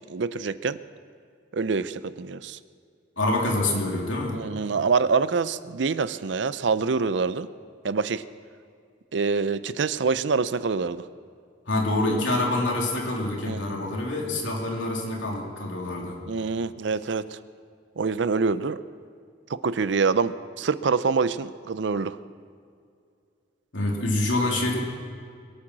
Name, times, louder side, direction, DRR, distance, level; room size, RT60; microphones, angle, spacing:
voice 1, 0.1-0.8 1.5-2.6 4.3-7.5 7.8-8.2 9.1-11.0 13.4-13.9 16.3-17.4 18.0-18.8 19.5-22.2, right 4 dB, 70° right, 15 dB, 0.5 m, -25 dB
voice 2, 3.2-4.4 11.7-16.2 23.7-24.8, left 2 dB, 85° left, -1 dB, 3.0 m, -26 dB
22.0 x 8.7 x 6.2 m, 2.3 s
head